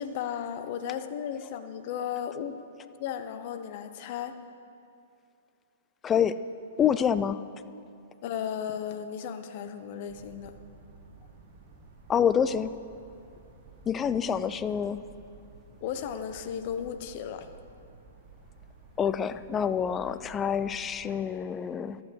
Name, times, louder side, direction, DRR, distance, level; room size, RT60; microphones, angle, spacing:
voice 1, 0.0-2.6 3.0-4.3 8.2-10.5 15.8-17.5, left 8 dB, 45° left, 9 dB, 0.8 m, -35 dB
voice 2, 6.0-6.4 6.8-7.4 12.1-12.7 13.9-15.0 19.0-22.0, left 8 dB, 20° left, 13 dB, 0.4 m, -27 dB
sound 1, 10.1-21.1, right 4 dB, 55° right, 1.8 m, -53 dB
12.5 x 8.0 x 6.5 m, 2.6 s
figure-of-eight pair, 110°, 0 cm